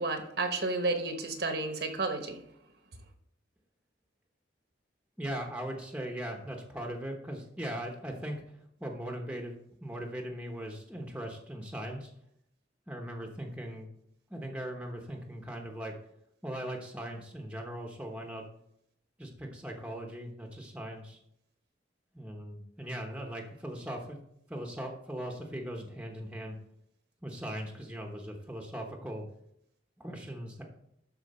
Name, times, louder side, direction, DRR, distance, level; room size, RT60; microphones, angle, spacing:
voice 1, 0.0-2.4, right 3 dB, 60° right, 5 dB, 1.1 m, -31 dB
voice 2, 5.2-12.1 12.9-13.9 14.3-15.9 16.4-18.5 19.2-21.2 22.1-24.2 24.5-26.6 27.2-29.2 30.0-30.6, right 1 dB, 5° right, 2 dB, 1.0 m, -39 dB
12.0 x 4.5 x 4.3 m, 0.75 s
head